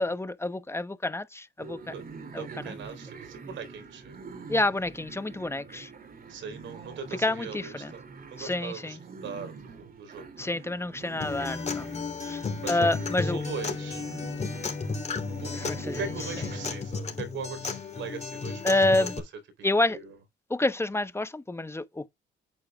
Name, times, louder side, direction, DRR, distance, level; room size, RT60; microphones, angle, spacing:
voice 1, 0.0-1.9 2.3-2.8 4.5-5.9 7.2-7.9 8.4-9.0 10.4-11.9 12.2-13.4 15.5-16.5 18.6-19.2 19.6-20.0 20.5-22.1, left 2 dB, 15° left, 1.0 m, -28 dB
sound 1, 1.6-16.8, right 4 dB, 45° right, 2.8 m, -45 dB
voice 2, 2.4-4.2 6.3-8.0 8.3-10.6 12.5-12.9 13.2-14.0 15.4-18.6 19.6-20.1, right 5 dB, 70° right, 3.8 m, -40 dB
Acoustic guitar, 11.2-19.2, left 4 dB, 35° left, 3.1 m, -33 dB
9.1 x 8.6 x 2.4 m
cardioid pair, 90°, 20 cm